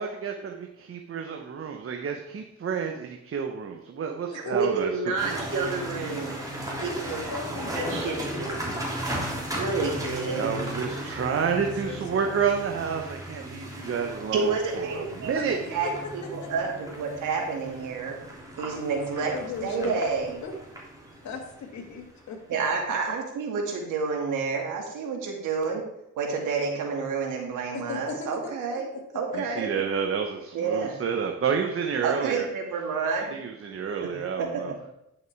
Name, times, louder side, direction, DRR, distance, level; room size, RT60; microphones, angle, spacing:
voice 1, 0.0-4.9 5.2-5.4 10.3-15.6 29.3-32.5 33.3-34.7, right 6 dB, 45° right, 3 dB, 1.1 m, -30 dB
voice 2, 4.3-6.4 6.8-7.2 7.8-8.5 9.5-10.5 14.3-15.9 16.3-18.2 18.6-19.3 19.6-20.4 22.5-25.8 26.2-28.9 29.1-29.7 30.5-31.0 32.0-33.3 34.0-34.6, right 5 dB, 85° right, 1 dB, 2.4 m, -29 dB
sound 1, 5.2-22.3, right 1 dB, 10° right, 3.2 m, -36 dB
voice 3, 6.6-8.4 8.7-8.8 9.1-12.5 15.4-15.5 15.8-16.5 18.6-20.0 20.4-20.5 21.2-22.4 27.7-29.4 33.3-33.4, left 4 dB, 65° left, 2 dB, 2.2 m, -38 dB
10.5 x 6.5 x 4.7 m, 0.83 s
cardioid pair, 90°, 30 cm